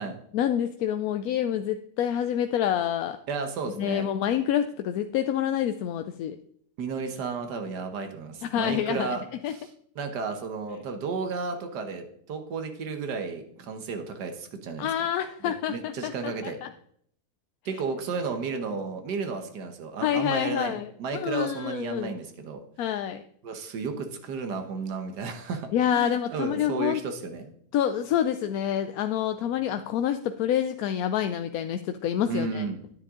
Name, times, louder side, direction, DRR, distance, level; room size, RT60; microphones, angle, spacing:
voice 1, 0.3-3.2 3.7-6.4 8.4-9.6 14.8-16.7 20.0-22.1 22.8-23.2 25.7-27.0 27.7-32.6, left 10 dB, 70° left, 9 dB, 0.9 m, -27 dB
voice 2, 3.3-4.1 6.8-9.2 9.5-9.7 9.9-14.9 15.4-16.6 17.6-20.7 21.0-22.6 23.4-27.5 32.3-32.8, right 5 dB, 85° right, 6 dB, 1.7 m, -33 dB
10.0 x 9.0 x 3.7 m, 0.65 s
omnidirectional pair, 1.7 m